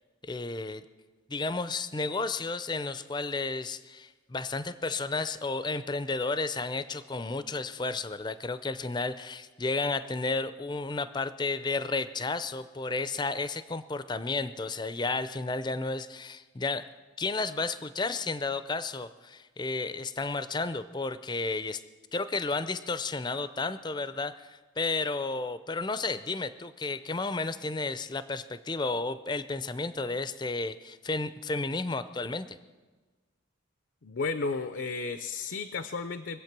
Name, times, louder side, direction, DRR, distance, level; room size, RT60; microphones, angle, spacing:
voice 1, 0.2-0.8 1.3-16.9 17.2-21.8 22.1-32.6, left 3 dB, 20° left, 13 dB, 0.5 m, -32 dB
voice 2, 34.0-36.4, left 4 dB, 65° left, 10 dB, 0.6 m, -33 dB
23.5 x 8.3 x 6.0 m, 1.3 s
head